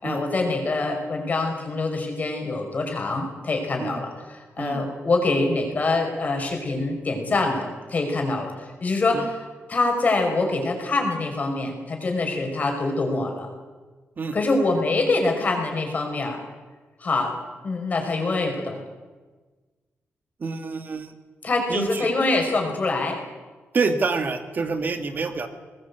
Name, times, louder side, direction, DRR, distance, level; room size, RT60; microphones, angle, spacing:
voice 1, 0.0-13.5 14.3-16.4 17.0-17.3 17.6-18.8 21.4-23.2, left 3 dB, 35° left, 3 dB, 5.2 m, -25 dB
voice 2, 20.4-21.1 21.7-22.1 23.7-25.5, right 4 dB, 45° right, 8 dB, 2.0 m, -27 dB
21.5 x 19.5 x 8.3 m, 1.3 s
wide cardioid pair, 150°, 5 cm